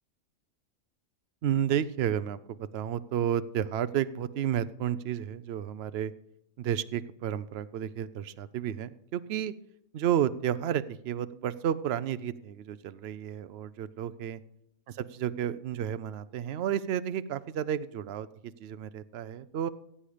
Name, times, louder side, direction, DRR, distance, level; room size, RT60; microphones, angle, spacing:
voice 1, 1.4-6.1 6.6-9.5 9.9-14.4 14.9-19.7, right 10 dB, 60° right, 15 dB, 0.7 m, -31 dB
15.5 x 8.5 x 5.0 m, 0.84 s
omnidirectional pair, 1.5 m